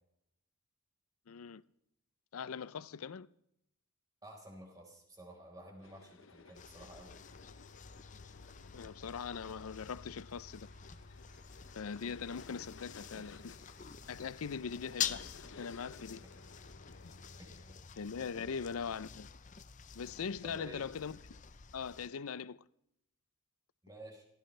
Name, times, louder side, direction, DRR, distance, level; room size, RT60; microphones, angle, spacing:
voice 1, 1.3-1.6 2.3-3.3 8.7-10.7 11.7-13.4 14.1-16.2 18.0-19.3 19.9-21.4 21.7-22.6, left 6 dB, 85° left, 0.5 m, -41 dB
voice 2, 4.2-7.2 13.2-13.4 17.4-17.8 18.3-18.5 20.4-20.9 23.8-24.2, right 1 dB, 15° right, 4.3 m, -52 dB
sound 1, 5.8-17.8, left 4 dB, 65° left, 0.8 m, -58 dB
sound 2, 6.6-22.1, left 8 dB, 35° left, 0.6 m, -47 dB
sound 3, 9.5-15.2, right 1 dB, 45° right, 3.4 m, -70 dB
26.5 x 15.5 x 3.3 m
head